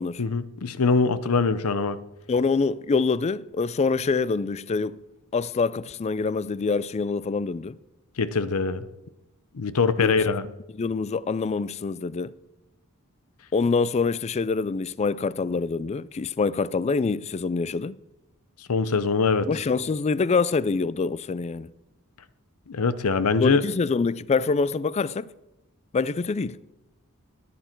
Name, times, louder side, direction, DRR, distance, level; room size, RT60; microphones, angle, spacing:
voice 1, 0.2-2.0 8.2-8.8 9.5-10.4 18.7-19.5 22.7-23.6, left 4 dB, 75° left, 0.7 m, -23 dB
voice 2, 2.3-5.0 5.3-7.8 10.0-10.5 10.7-12.3 13.5-18.0 19.5-21.7 23.4-25.3 25.9-26.6, left 4 dB, 30° left, 0.3 m, -25 dB
15.0 x 10.5 x 4.5 m
head